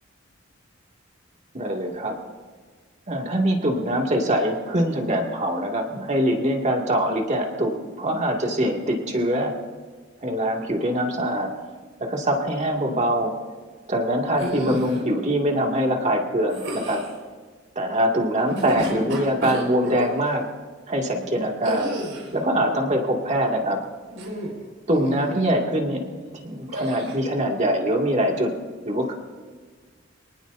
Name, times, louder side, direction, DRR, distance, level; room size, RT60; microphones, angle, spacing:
voice 1, 1.5-2.1 3.1-9.5 10.2-11.5 12.0-13.3 13.9-17.0 17.8-20.5 20.9-22.0 22.3-23.8 24.9-26.0 26.4-28.5 28.8-29.1, equal, 35° right, 1 dB, 2.3 m, -23 dB
sound 1, 14.3-15.0 16.5-17.1 18.4-20.1 21.6-22.4 24.1-24.6 24.9-25.3 26.7-27.2, equal, 75° right, 4.9 m, -30 dB
26.0 x 19.0 x 2.7 m, 1.5 s
head